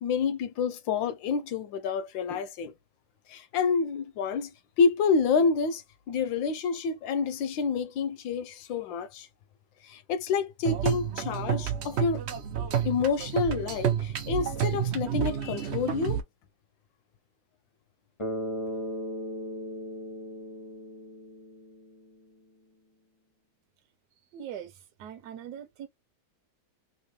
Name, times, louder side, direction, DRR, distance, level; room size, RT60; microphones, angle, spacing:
voice 1, 0.0-2.7 3.3-4.5 4.8-9.3 9.8-12.2 12.8-16.2, left 5 dB, 75° left, 1.4 m, -28 dB
sound 1, 10.7-16.2, right 9 dB, 85° right, 0.5 m, -30 dB
Bass guitar, 18.2-22.2, equal, 30° left, 0.5 m, -37 dB
voice 2, 24.3-25.9, right 9 dB, 65° right, 1.3 m, -41 dB
3.6 x 2.6 x 3.1 m
omnidirectional pair, 2.2 m